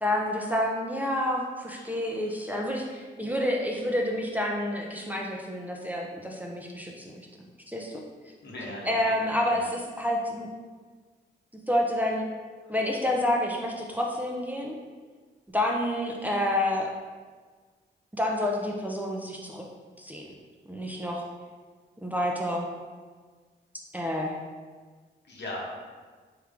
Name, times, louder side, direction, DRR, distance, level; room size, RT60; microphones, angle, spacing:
voice 1, 0.0-7.2 7.7-8.0 8.8-10.5 11.7-12.2 12.7-14.8 15.5-16.9 18.1-19.6 20.0-20.2 20.7-21.2 22.0-22.7 23.9-24.4, left 1 dB, 10° right, -1 dB, 0.5 m, -28 dB
voice 2, 8.4-9.1 9.6-9.7 12.6-12.7 25.3-25.7, left 1 dB, 65° left, -4 dB, 1.1 m, -38 dB
3.6 x 3.0 x 3.4 m, 1.5 s
cardioid pair, 60°, 20 cm